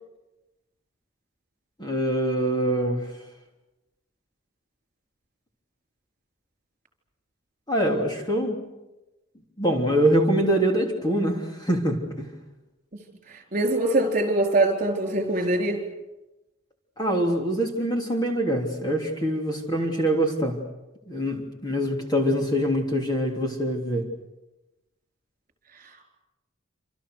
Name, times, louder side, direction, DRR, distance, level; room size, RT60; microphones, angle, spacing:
voice 1, 1.8-3.1 7.7-8.6 9.6-12.3 17.0-20.6 21.1-24.1, equal, 20° left, 1 dB, 3.3 m, -24 dB
voice 2, 13.3-15.8, right 2 dB, 40° right, 3 dB, 4.5 m, -23 dB
28.0 x 27.0 x 6.7 m, 1.0 s
head